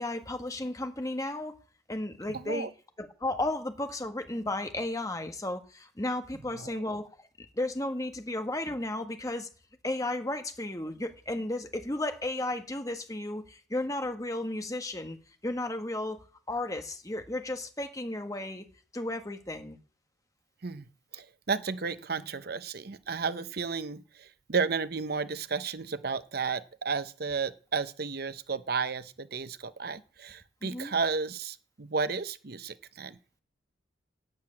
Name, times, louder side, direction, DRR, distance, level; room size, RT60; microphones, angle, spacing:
voice 1, 0.0-1.6 1.9-2.7 3.0-7.1 7.4-9.5 9.8-15.2 15.4-18.6 18.9-19.8 30.6-30.9, left 1 dB, 15° left, 1.4 m, -34 dB
voice 2, 2.3-2.7 6.6-6.8 20.6-20.9 21.1-33.2, right 5 dB, 50° right, 0.8 m, -33 dB
12.0 x 9.5 x 8.8 m
head